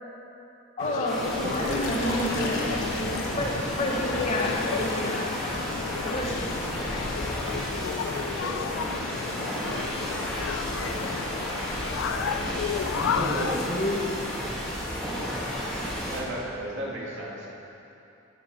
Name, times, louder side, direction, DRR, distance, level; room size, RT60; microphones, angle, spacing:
sound 1, 0.8-13.7, left 8 dB, 90° left, 0.3 m, -33 dB
voice 1, 0.8-6.9 13.7-14.2, left 1 dB, 35° left, -1 dB, 1.1 m, -31 dB
sound 2, 1.1-16.2, equal, ahead, 1.5 m, -32 dB
voice 2, 1.3-2.8 12.9-13.7 16.1-17.5, right 1 dB, 70° right, -4 dB, 1.9 m, -33 dB
Water / Liquid, 1.5-7.1, left 3 dB, 70° left, 1.0 m, -41 dB
voice 3, 8.4-11.8, right 1 dB, 20° right, -2 dB, 0.5 m, -45 dB
10.0 x 7.5 x 5.0 m, 2.9 s
head